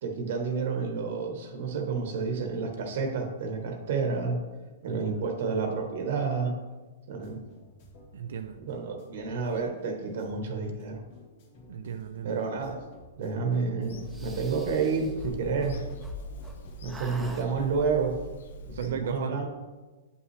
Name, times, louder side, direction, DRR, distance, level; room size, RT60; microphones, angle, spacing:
voice 1, 0.0-4.4 4.8-6.5 7.1-7.4 8.7-11.0 12.2-12.8 13.2-15.8 16.8-18.2 18.6-19.5, right 5 dB, 60° right, 4 dB, 1.1 m, -30 dB
voice 2, 4.8-5.2 8.1-8.6 11.7-12.4 18.8-19.4, right 8 dB, 75° right, 7 dB, 0.4 m, -36 dB
sound 1, 7.2-16.8, left 2 dB, 45° left, 1.8 m, -53 dB
Bird vocalization bird call bird song / Telephone, 13.8-18.9, equal, 75° left, 0.8 m, -42 dB
sound 2, 14.1-16.6 16.9-17.5, right 1 dB, 5° right, 0.7 m, -43 dB
9.1 x 5.4 x 3.2 m, 1.3 s
hypercardioid pair, 155°, 0 cm